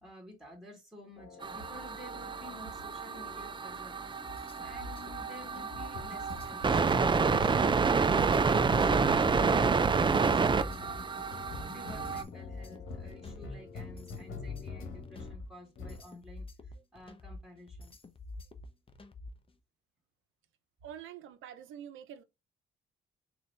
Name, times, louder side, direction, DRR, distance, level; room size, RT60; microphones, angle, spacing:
voice 1, 0.0-4.0 4.6-6.9 7.2-17.9, left 1 dB, ahead, 2.1 m, -52 dB
sound 1, 1.2-15.4 15.8-16.1, left 4 dB, 75° left, 1.3 m, -46 dB
sound 2, 1.4-12.2, right 5 dB, 25° right, 0.5 m, -29 dB
sound 3, 4.2-19.5, left 2 dB, 25° left, 0.7 m, -47 dB
voice 2, 20.8-22.2, right 9 dB, 85° right, 0.7 m, -46 dB
3.7 x 2.9 x 3.3 m
cardioid pair, 90°, 20 cm